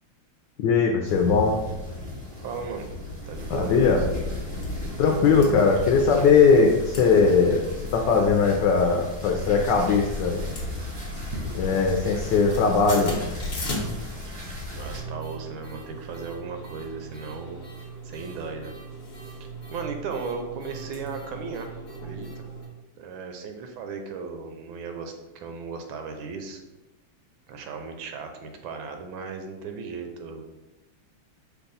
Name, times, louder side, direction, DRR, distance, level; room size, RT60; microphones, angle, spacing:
voice 1, 0.6-1.6 3.5-4.0 5.0-7.6 7.9-10.4 11.6-13.1, left 5 dB, 75° left, 2 dB, 1.1 m, -20 dB
sound 1, 1.0-15.0, left 1 dB, 30° right, 0.5 m, -35 dB
voice 2, 2.4-2.9 3.3-4.1 5.0-5.5 14.8-17.6 18.0-18.7 19.7-21.7 22.0-22.5 23.0-26.6 27.5-30.5, right 5 dB, 80° right, 5 dB, 1.4 m, -36 dB
Penny flattening machine in a gift shop, 4.6-4.7 5.1-5.5 6.3-6.6 6.9-7.1 7.4-7.5 8.0-8.3 9.0-9.6 9.9-11.3 11.6-11.9 12.1-22.7, right 1 dB, 40° left, 0.9 m, -38 dB
5.4 x 2.3 x 3.9 m, 1.0 s
omnidirectional pair, 2.2 m